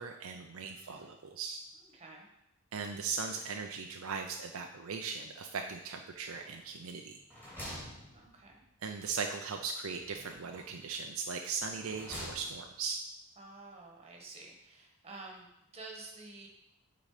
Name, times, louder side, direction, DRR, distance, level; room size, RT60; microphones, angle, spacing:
voice 1, 0.0-1.6 2.7-7.2 8.8-13.0, right 5 dB, 65° right, 4 dB, 0.5 m, -38 dB
voice 2, 0.6-1.1 1.7-2.3 8.1-8.6 13.4-16.5, right 3 dB, 30° right, 0 dB, 1.4 m, -50 dB
sound 1, 6.3-6.8 7.1-8.7 10.0-10.9 11.5-12.8, equal, 10° left, 2.9 m, -47 dB
8.5 x 3.9 x 4.9 m, 0.84 s
head